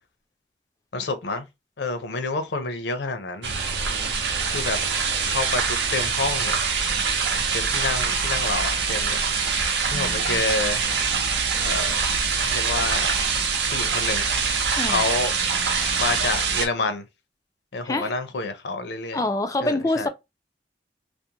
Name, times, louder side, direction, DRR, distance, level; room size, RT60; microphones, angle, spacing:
voice 1, 0.9-1.5 1.8-3.6 4.4-4.8 5.3-6.6 7.5-9.2 9.9-10.8 11.6-11.9 12.5-13.1 13.7-14.3 14.9-15.3 16.0-17.0 17.7-19.2 19.6-20.1, left 3 dB, 80° left, 0.6 m, -28 dB
sound 1, 3.4-16.7, right 5 dB, 80° right, 0.6 m, -24 dB
voice 2, 9.9-10.4 14.8-15.0 17.8-18.1 19.1-20.1, left 2 dB, 20° left, 0.3 m, -26 dB
2.5 x 2.0 x 2.8 m
head